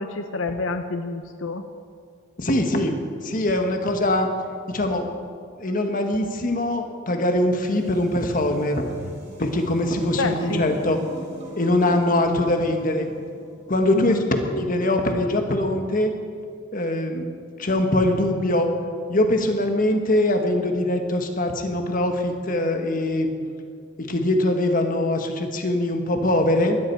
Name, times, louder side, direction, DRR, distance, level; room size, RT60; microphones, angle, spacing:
voice 1, 0.0-1.6 10.2-10.6 13.9-14.3, left 3 dB, 85° left, 7 dB, 0.8 m, -28 dB
voice 2, 2.4-4.3 4.7-5.1 5.6-8.8 9.4-11.0 11.6-13.1 13.7-14.2 14.5-16.1 16.7-17.3 17.6-18.7 19.1-23.3 24.0-26.8, left 1 dB, 45° left, 5 dB, 1.5 m, -22 dB
sound 1, 7.4-13.7, left 1 dB, 35° right, 3.9 m, -43 dB
19.0 x 13.5 x 4.7 m, 2.2 s
head